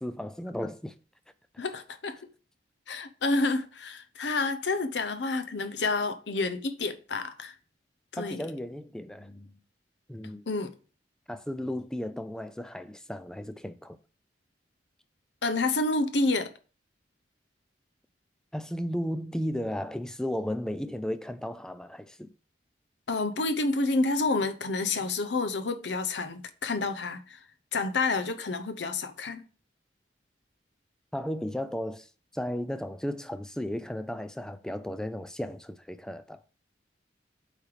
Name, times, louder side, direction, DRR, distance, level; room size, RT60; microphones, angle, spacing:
voice 1, 0.0-0.9 8.2-9.6 10.1-10.4 11.3-14.0 18.5-22.3 31.1-36.4, equal, 5° left, 0.3 m, -35 dB
voice 2, 1.6-2.2 2.9-7.5 8.1-8.4 10.5-10.7 15.4-16.5 23.1-27.4 27.7-29.4, left 3 dB, 75° left, 0.8 m, -29 dB
8.4 x 3.3 x 4.8 m
head